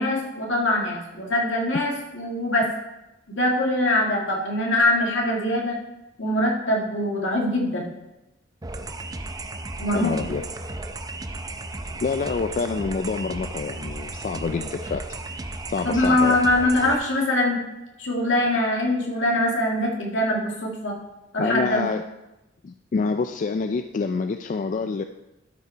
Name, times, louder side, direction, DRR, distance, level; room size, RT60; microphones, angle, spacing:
voice 1, 0.0-2.7 3.3-5.8 6.2-7.9 9.8-10.3 15.8-17.6 18.0-21.0 21.3-21.8, left 1 dB, 75° left, -1 dB, 2.1 m, -23 dB
sound 1, 8.6-16.9, right 2 dB, 20° right, 0.5 m, -34 dB
voice 2, 9.9-10.4 12.0-15.0 15.7-16.4 21.4-22.0 22.6-25.0, left 4 dB, 45° left, 8 dB, 0.3 m, -27 dB
12.0 x 5.5 x 4.5 m, 0.96 s
head